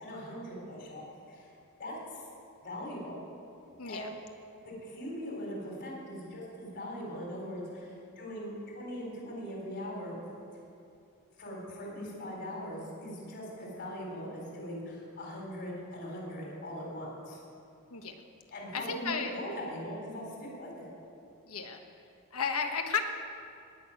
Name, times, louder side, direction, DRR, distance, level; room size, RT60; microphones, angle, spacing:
voice 1, 0.0-1.5 1.8-2.2 2.6-3.2 3.8-4.1 4.6-10.1 11.4-17.4 18.5-20.9, equal, 50° left, -2 dB, 3.9 m, -40 dB
voice 2, 3.8-4.1 17.9-18.1 18.7-19.4 21.5-21.8 22.3-23.0, left 6 dB, 70° left, 5 dB, 1.3 m, -33 dB
18.5 x 6.6 x 9.1 m, 2.6 s
head